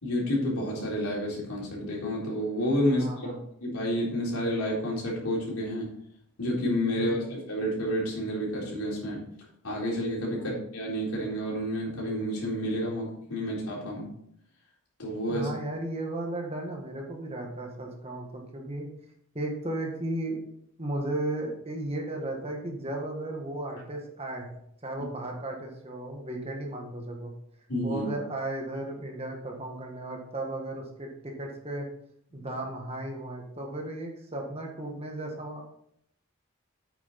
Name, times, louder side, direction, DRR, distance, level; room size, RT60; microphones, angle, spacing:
voice 1, 0.0-3.3 3.6-5.9 6.4-9.2 9.6-14.1 15.0-15.5 27.7-28.0 32.4-32.5, equal, 80° left, -4 dB, 3.9 m, -30 dB
voice 2, 2.9-3.4 6.9-7.3 10.3-10.5 15.3-18.9 19.3-20.4 20.8-24.5 24.8-27.3 27.8-31.9 32.3-35.6, right 1 dB, 25° right, 1 dB, 1.5 m, -35 dB
8.5 x 7.3 x 4.2 m, 0.71 s
head